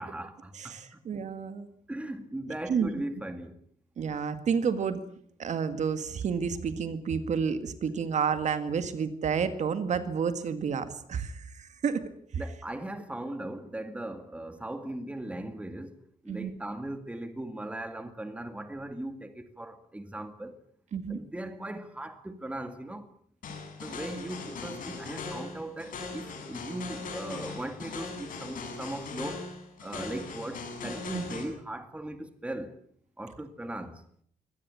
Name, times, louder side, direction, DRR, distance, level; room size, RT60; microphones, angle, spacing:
voice 1, 0.0-1.0 1.9-3.6 12.4-20.6 21.1-23.1 23.8-29.5 29.8-32.7 33.2-34.0, right 1 dB, 10° right, 2.2 m, -38 dB
voice 2, 0.6-1.7 2.7-3.0 4.0-5.0 5.4-12.0 16.3-16.5 20.9-21.2 31.1-31.3, right 6 dB, 55° right, 2.0 m, -30 dB
sound 1, 23.4-31.4, left 4 dB, 70° left, 7.5 m, -39 dB
24.5 x 18.0 x 8.4 m
wide cardioid pair, 150°, 14 cm